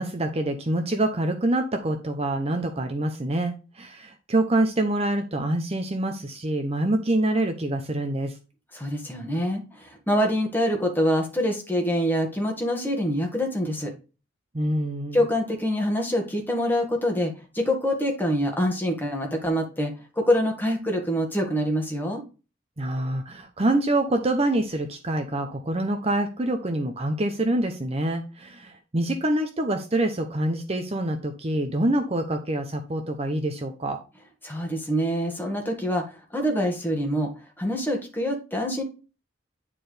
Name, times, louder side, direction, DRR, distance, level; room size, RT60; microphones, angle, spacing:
voice 1, 0.0-8.3 14.5-15.2 22.8-34.0, right 1 dB, 30° right, 5 dB, 0.8 m, -26 dB
voice 2, 8.7-13.9 15.1-22.2 34.4-37.3 37.6-38.8, equal, 10° left, 1 dB, 1.8 m, -25 dB
9.9 x 4.5 x 3.4 m, 0.32 s
head